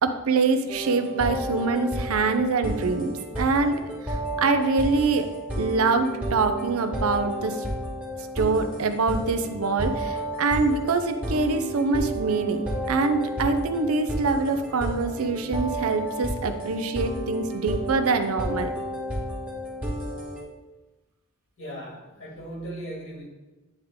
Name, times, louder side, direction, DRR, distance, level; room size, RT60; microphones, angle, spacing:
voice 1, 0.0-5.3 5.6-7.6 8.4-12.6 12.9-18.7, right 4 dB, 65° right, 8 dB, 0.5 m, -24 dB
sound 1, 0.7-20.4, right 1 dB, 5° right, 1.2 m, -32 dB
voice 2, 21.6-23.3, right 1 dB, 60° left, -1 dB, 1.7 m, -37 dB
9.6 x 3.6 x 3.5 m, 1.1 s
head